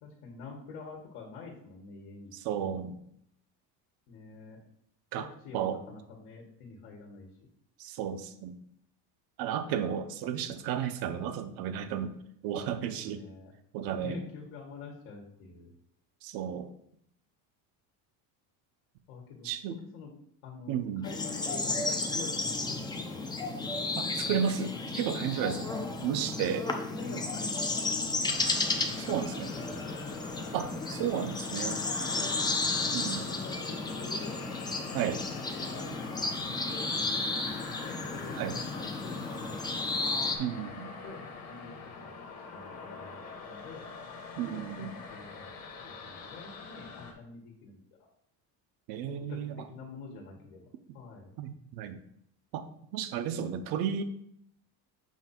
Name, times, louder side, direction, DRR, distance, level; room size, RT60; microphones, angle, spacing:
voice 1, 0.0-2.4 4.1-4.6 5.4-7.3 12.6-13.5 14.0-15.7 19.1-20.1 20.4-23.4 23.7-24.0 25.6-26.6 26.9-29.8 31.4-34.4 35.3-37.0 37.8-39.8 40.4-40.7 41.0-42.1 42.5-43.8 44.5-47.8 49.1-50.7 50.9-51.3, left 4 dB, 75° left, -1 dB, 1.7 m, -46 dB
voice 2, 2.3-3.0 5.1-5.3 5.5-5.8 7.8-8.6 9.4-12.1 12.4-13.2 13.7-14.2 16.2-16.7 19.4-19.8 20.7-21.1 24.0-25.7 26.0-26.7 29.1-29.5 30.5-31.8 32.9-33.2 34.9-35.2 38.4-38.6 40.4-40.9 44.4-44.9 48.9-49.6 51.4-52.0 52.5-52.6 52.9-54.0, right 8 dB, 65° right, 10 dB, 0.8 m, -33 dB
sound 1, 21.0-40.4, left 3 dB, 10° left, 0.5 m, -33 dB
sound 2, 28.3-47.1, left 4 dB, 40° left, 1.3 m, -44 dB
7.3 x 2.7 x 5.8 m, 0.72 s
cardioid pair, 145°, 39 cm